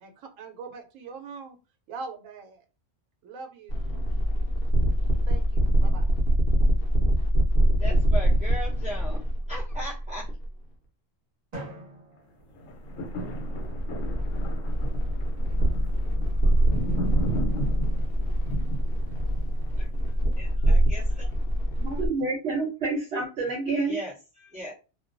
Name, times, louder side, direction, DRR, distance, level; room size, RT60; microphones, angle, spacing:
voice 1, 0.0-1.6 1.9-2.6 3.2-3.8 5.3-6.1, right 4 dB, 90° right, 5 dB, 1.0 m, -42 dB
sound 1, 3.7-10.5 12.8-22.1, equal, 60° left, 0.8 m, -24 dB
voice 2, 7.8-10.3 19.8-19.9 20.4-21.3 23.9-24.7, equal, 10° right, -8 dB, 0.4 m, -38 dB
Drum, 11.5-13.5, right 1 dB, 35° right, 0.9 m, -44 dB
sound 2, 12.5-20.8 21.3-21.4, right 1 dB, 80° left, 1.0 m, -35 dB
voice 3, 21.8-24.0, right 3 dB, 65° right, 0 dB, 0.9 m, -28 dB
2.2 x 2.2 x 2.5 m, 0.31 s
omnidirectional pair, 1.3 m